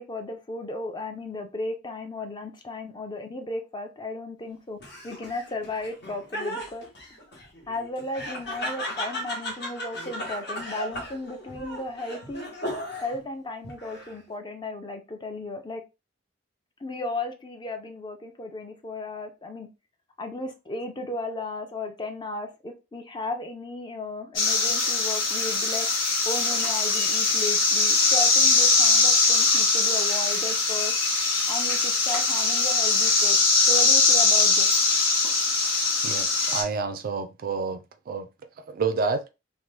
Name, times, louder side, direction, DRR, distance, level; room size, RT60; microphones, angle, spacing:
voice 1, 0.0-4.8 5.0-6.8 7.7-12.4 13.0-15.8 16.8-19.7 20.2-25.9 26.3-30.9 31.5-33.4 33.7-34.7, left 2 dB, 25° left, 0.5 m, -35 dB
Laughter, 4.8-13.2 13.6-14.3, equal, 60° left, 1.1 m, -36 dB
sound 1, 24.4-36.6, left 3 dB, 85° left, 1.1 m, -21 dB
voice 2, 36.0-37.8 38.1-38.3 38.7-39.3, right 4 dB, 50° right, 0.3 m, -29 dB
2.9 x 2.2 x 3.1 m
head